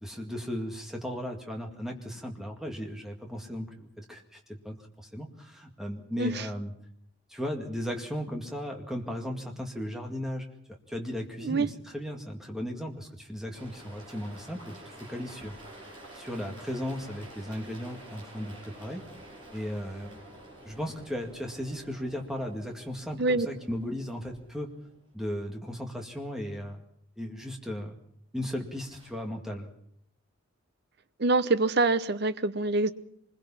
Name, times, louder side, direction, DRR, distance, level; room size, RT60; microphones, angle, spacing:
voice 1, 0.0-6.7 7.3-10.5 10.9-14.8 15.1-15.5 16.1-19.0 19.5-20.2 20.6-24.7 25.1-26.8 27.2-28.0 28.3-29.7, equal, ahead, 2 dB, 2.2 m, -36 dB
voice 2, 6.2-6.5 11.4-11.7 23.2-23.5 31.2-32.9, right 3 dB, 50° right, 13 dB, 0.9 m, -25 dB
sound 1, 13.5-25.1 28.6-29.1, right 1 dB, 25° right, 7.2 m, -49 dB
26.0 x 21.0 x 5.8 m, 0.71 s
head